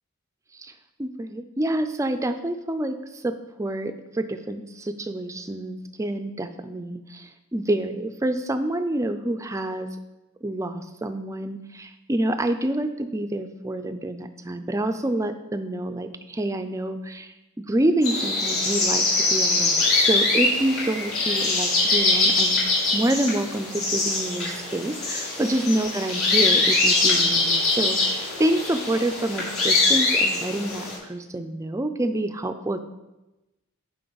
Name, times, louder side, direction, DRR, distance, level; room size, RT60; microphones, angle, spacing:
voice 1, 1.0-9.9 10.4-19.1 19.3-22.6 22.9-32.8, right 1 dB, 15° right, 8 dB, 0.4 m, -27 dB
sound 1, 18.0-31.0, left 3 dB, 70° left, 3.0 m, -23 dB
9.2 x 5.3 x 4.0 m, 1.0 s
head